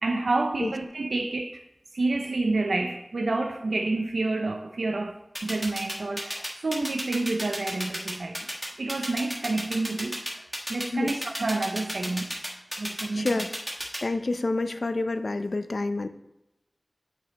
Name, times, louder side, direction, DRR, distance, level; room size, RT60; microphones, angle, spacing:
voice 1, 0.0-1.6 1.9-8.5 8.8-10.4 10.7-12.4 12.8-13.3, right 2 dB, 90° right, 0.6 m, -29 dB
sound 1, 5.4-14.0, equal, ahead, 1.4 m, -32 dB
voice 2, 13.1-13.5 14.0-16.1, left 2 dB, 65° left, 0.5 m, -28 dB
9.0 x 5.0 x 4.1 m
wide cardioid pair, 65°, 0 cm